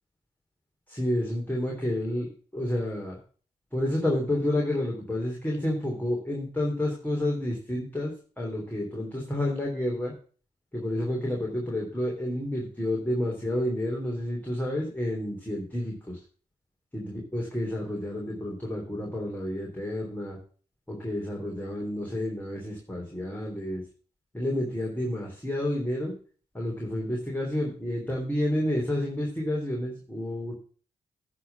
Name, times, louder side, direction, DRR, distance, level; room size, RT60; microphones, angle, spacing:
voice 1, 0.9-2.3 2.5-3.2 3.7-10.1 10.7-16.2 16.9-20.4 20.9-23.8 24.3-26.1 26.5-30.5, left 1 dB, 10° left, -3 dB, 3.2 m, -30 dB
10.0 x 4.0 x 6.9 m, 0.41 s
supercardioid pair, 50°, 17 cm